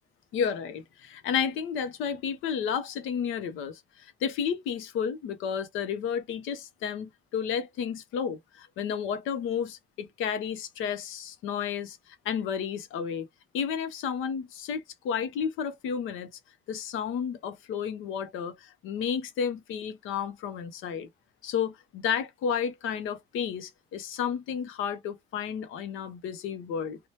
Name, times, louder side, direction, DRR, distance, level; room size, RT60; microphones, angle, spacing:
voice 1, 0.3-13.3 13.5-16.3 16.7-21.1 21.4-27.0, left 7 dB, 90° left, 0.7 m, -32 dB
2.8 x 2.1 x 3.0 m
cardioid pair, 90°, 20 cm